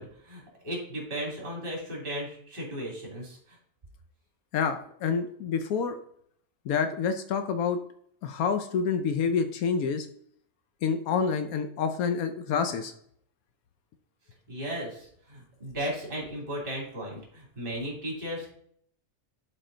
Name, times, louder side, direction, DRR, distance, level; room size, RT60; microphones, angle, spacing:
voice 1, 0.0-3.6 14.5-18.5, equal, 40° right, -2 dB, 2.7 m, -36 dB
voice 2, 4.5-6.0 6.7-7.8 8.2-10.1 10.8-12.9, left 6 dB, 85° left, 8 dB, 1.2 m, -28 dB
11.0 x 4.1 x 3.8 m, 0.65 s
omnidirectional pair, 1.5 m